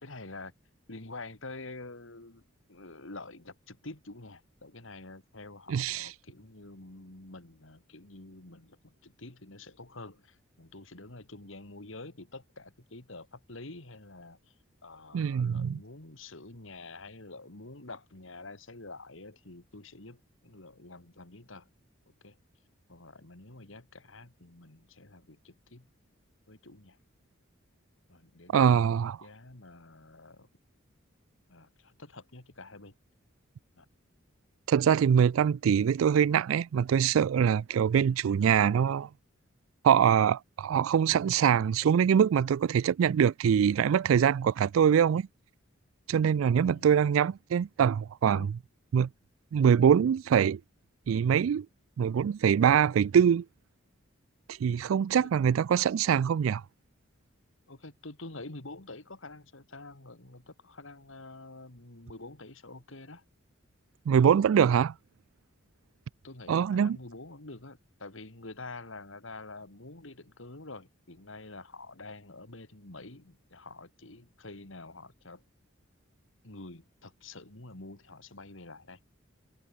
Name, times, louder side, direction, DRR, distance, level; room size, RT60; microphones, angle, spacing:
voice 1, 0.0-0.5 0.9-14.6 14.8-21.7 22.1-22.4 22.9-25.9 26.5-27.0 28.1-30.5 31.5-32.9 33.8-33.9 46.7-46.9 48.3-48.5 55.2-55.3 57.7-63.2 64.4-64.5 66.2-75.4 76.4-79.0, left 2 dB, 70° left, 2.5 m, -47 dB
voice 2, 5.7-6.1 15.1-15.8 28.5-29.2 34.7-39.1 39.8-45.3 46.1-48.4 48.9-49.1 49.5-50.6 51.1-51.7 52.0-53.4 54.6-56.6 64.1-64.9 66.5-67.0, right 8 dB, 80° right, 0.3 m, -24 dB
head